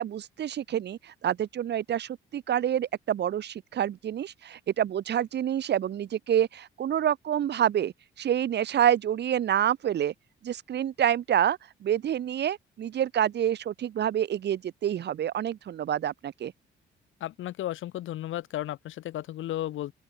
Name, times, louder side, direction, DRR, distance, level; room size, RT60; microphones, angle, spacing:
voice 1, 0.0-10.1 10.4-16.5, right 10 dB, 60° right, 1.1 m, -27 dB
voice 2, 17.2-19.9, left 13 dB, 80° left, 4.1 m, -34 dB
open air
cardioid pair, 90°, 20 cm